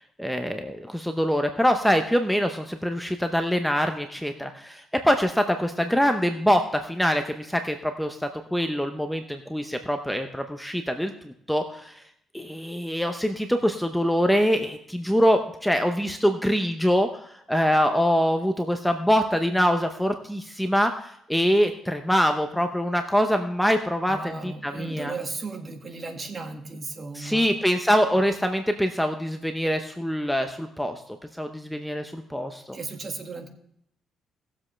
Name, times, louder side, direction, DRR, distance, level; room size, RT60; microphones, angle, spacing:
voice 1, 0.2-11.9 12.3-17.1 17.5-25.1 27.2-31.0 31.4-32.8, equal, ahead, 6 dB, 0.8 m, -24 dB
voice 2, 24.1-27.5 28.1-28.2 32.7-33.5, right 3 dB, 35° right, 4 dB, 1.8 m, -35 dB
19.0 x 7.6 x 3.3 m, 0.72 s
cardioid pair, 90°, 0 cm